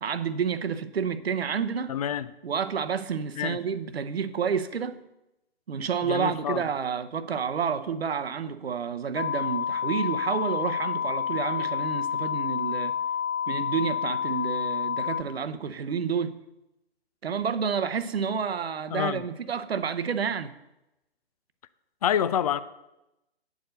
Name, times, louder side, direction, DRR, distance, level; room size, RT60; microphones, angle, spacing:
voice 1, 0.0-2.0 2.4-5.0 5.7-12.9 13.5-16.4 17.2-20.6, right 6 dB, 70° right, 0.8 m, -29 dB
voice 2, 1.9-2.3 3.4-3.6 6.0-6.7 18.9-19.2 22.0-22.6, left 9 dB, 35° left, 0.4 m, -27 dB
sound 1, 9.2-15.2, left 8 dB, 75° left, 0.9 m, -29 dB
9.2 x 4.8 x 7.7 m
figure-of-eight pair, 130°, 32 cm